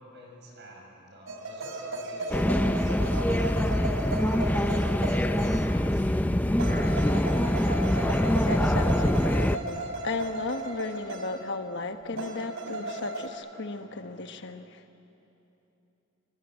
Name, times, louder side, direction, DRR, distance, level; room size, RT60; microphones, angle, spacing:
voice 1, 0.0-6.7, right 1 dB, 55° right, 0 dB, 6.8 m, -48 dB
sound 1, 1.3-5.9 6.6-11.5 12.2-13.3, right 2 dB, 90° right, 3.1 m, -36 dB
sound 2, 2.3-9.6, left 1 dB, 10° left, 0.5 m, -24 dB
voice 2, 8.4-14.8, left 3 dB, 55° left, 7 dB, 1.1 m, -35 dB
24.5 x 24.5 x 9.0 m, 3.0 s
head